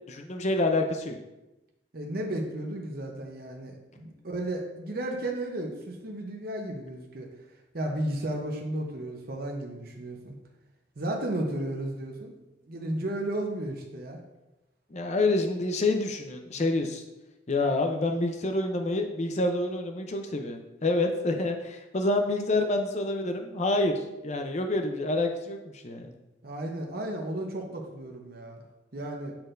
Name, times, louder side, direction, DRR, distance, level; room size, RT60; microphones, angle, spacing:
voice 1, 0.1-1.2 14.9-17.0 17.5-26.1, left 2 dB, 35° left, 4 dB, 0.6 m, -27 dB
voice 2, 1.9-7.3 7.7-10.3 11.0-12.3 12.7-14.2 26.4-28.6 28.9-29.3, right 1 dB, 50° right, 1 dB, 0.8 m, -33 dB
9.3 x 4.3 x 2.6 m, 0.99 s
head